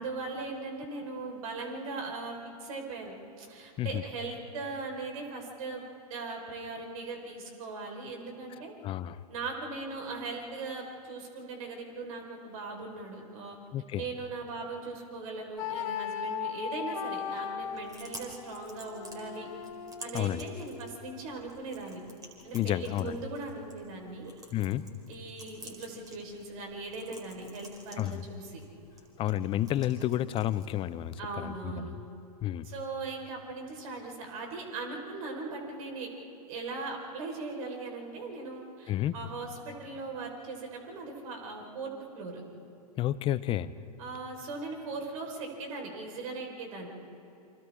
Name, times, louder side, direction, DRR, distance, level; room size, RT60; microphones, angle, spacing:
voice 1, 0.0-5.8 6.1-8.7 9.3-13.6 14.0-19.5 20.0-22.0 22.4-24.3 25.1-28.6 31.2-31.9 32.6-36.1 36.5-42.4 44.0-46.9, right 3 dB, 60° right, 1 dB, 4.8 m, -39 dB
voice 2, 8.8-9.2 13.7-14.0 20.1-20.5 22.5-23.2 24.5-24.9 28.0-28.3 29.2-32.0 32.4-32.7 38.9-39.2 43.0-43.7, left 13 dB, 25° left, 16 dB, 0.6 m, -31 dB
sound 1, 15.6-21.4, left 8 dB, 60° left, 2.0 m, -38 dB
Chewing mastication, 17.6-31.6, right 1 dB, 20° right, 4.5 m, -52 dB
29.5 x 26.0 x 3.7 m, 2.8 s
hypercardioid pair, 110°, 20 cm